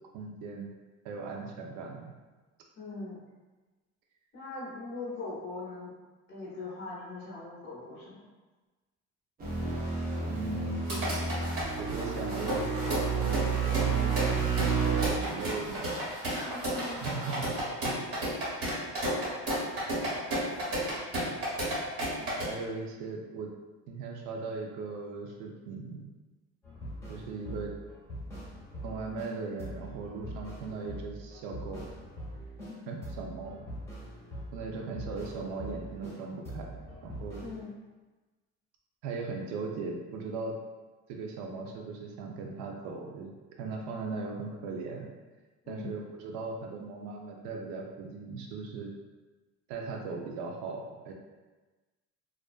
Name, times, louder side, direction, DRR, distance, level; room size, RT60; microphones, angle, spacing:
voice 1, 0.1-0.7 1.0-2.1 10.3-11.0 11.7-16.0 16.9-17.5 17.8-18.0 22.4-23.5 23.9-26.0 27.1-27.7 28.8-31.9 32.9-33.6 34.5-36.7 37.0-37.4 39.0-40.6 41.1-43.3 43.6-45.1 45.7-48.9 49.7-51.1, right 4 dB, 80° right, 1 dB, 0.5 m, -38 dB
voice 2, 2.8-3.2 4.3-5.9 6.3-8.3 16.3-17.0 20.2-20.7 32.7-32.9 37.4-37.7 45.6-46.0, left 3 dB, 40° left, -6 dB, 0.7 m, -41 dB
sound 1, 9.4-15.1, right 5 dB, 30° right, 0.6 m, -30 dB
sound 2, 10.9-22.4, right 1 dB, 50° right, 1.4 m, -33 dB
sound 3, 26.6-29.3 29.6-32.7 33.0-36.2 36.4-37.7, equal, 10° left, 1.0 m, -43 dB
2.4 x 2.2 x 2.4 m, 1.2 s
cardioid pair, 130°, 30 cm